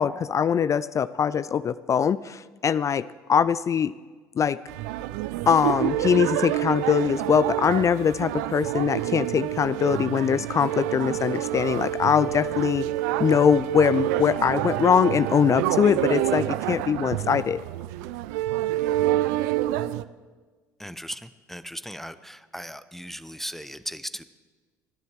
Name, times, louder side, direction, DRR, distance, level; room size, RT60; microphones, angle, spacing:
voice 1, 0.0-3.9 4.4-4.6 5.5-12.9 13.2-17.6, left 7 dB, 35° left, 16 dB, 0.4 m, -22 dB
sound 1, 4.7-20.0, right 14 dB, 70° right, 0.5 m, -27 dB
voice 2, 20.8-24.2, equal, 5° left, 13 dB, 0.6 m, -37 dB
29.5 x 10.5 x 3.3 m, 1.4 s
hypercardioid pair, 60°, 9 cm